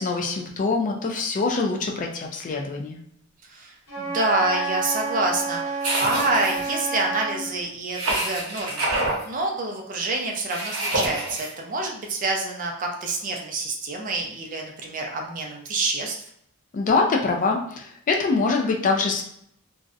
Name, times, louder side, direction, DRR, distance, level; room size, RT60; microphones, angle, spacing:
voice 1, 0.0-3.0 16.7-19.2, left 4 dB, 35° left, 1 dB, 0.3 m, -24 dB
voice 2, 3.5-16.2, right 2 dB, 40° right, 1 dB, 0.4 m, -27 dB
Wind instrument woodwind instrument, 3.9-7.4, right 3 dB, 70° left, 0.8 m, -29 dB
sound 1, 5.8-6.8 7.9-9.2 10.5-11.5, right 1 dB, 80° right, 0.7 m, -27 dB
2.6 x 2.0 x 2.4 m, 0.70 s
head